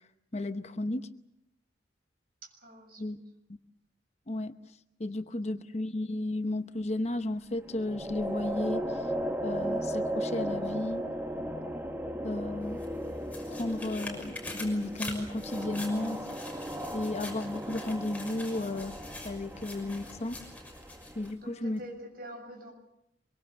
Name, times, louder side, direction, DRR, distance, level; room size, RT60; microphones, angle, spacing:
voice 1, 0.3-1.1 3.0-3.2 4.3-4.5 5.0-8.9 9.4-11.1 12.2-12.8 13.5-16.2 16.9-19.0 19.2-20.4 21.2-21.8, left 2 dB, 35° left, 9 dB, 0.9 m, -33 dB
voice 2, 2.4-3.1 21.4-22.7, equal, 55° right, 4 dB, 7.0 m, -46 dB
sound 1, 7.7-21.3, equal, 10° right, 1.2 m, -36 dB
sound 2, 12.6-21.3 21.8-21.9, left 2 dB, 10° left, 6.1 m, -45 dB
25.0 x 24.0 x 6.8 m, 0.81 s
head